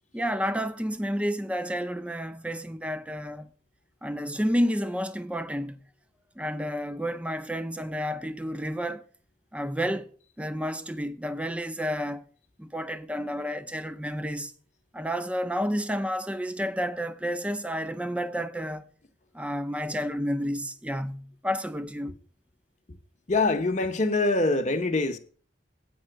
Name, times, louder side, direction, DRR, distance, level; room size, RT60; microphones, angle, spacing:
voice 1, 0.1-3.5 4.0-5.8 6.4-9.0 9.5-12.2 12.6-14.5 14.9-18.9 19.3-22.1, equal, 5° right, 0.5 m, -30 dB
voice 2, 23.3-25.2, left 2 dB, 40° left, 0.8 m, -24 dB
8.6 x 5.4 x 7.7 m
head